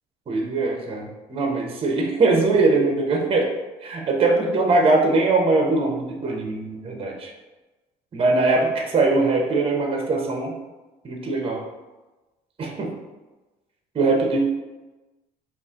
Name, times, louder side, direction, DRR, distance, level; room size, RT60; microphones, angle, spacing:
voice 1, 0.3-3.5 3.8-7.3 8.1-10.5 11.0-11.6 12.6-12.9 13.9-14.5, right 3 dB, 35° right, 1 dB, 0.8 m, -21 dB
4.0 x 2.5 x 3.6 m, 1.1 s
cardioid pair, 110°, 17 cm